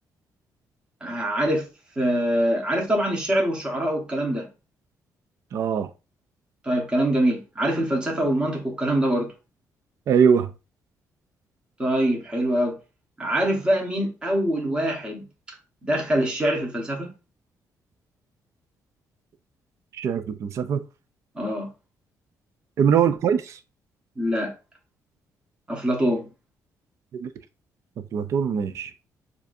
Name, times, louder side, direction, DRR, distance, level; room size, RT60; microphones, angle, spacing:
voice 1, 1.0-1.7 2.0-4.5 6.6-9.3 11.8-12.8 13.2-15.2 15.8-17.1 21.3-21.7 24.2-24.5 25.7-26.3, right 1 dB, 15° right, 1.2 m, -24 dB
voice 2, 5.5-5.9 10.1-10.5 19.9-20.8 22.8-23.6 27.1-27.3 28.1-28.9, right 7 dB, 50° right, 0.4 m, -22 dB
6.9 x 2.6 x 2.6 m
cardioid pair, 160°, 6 cm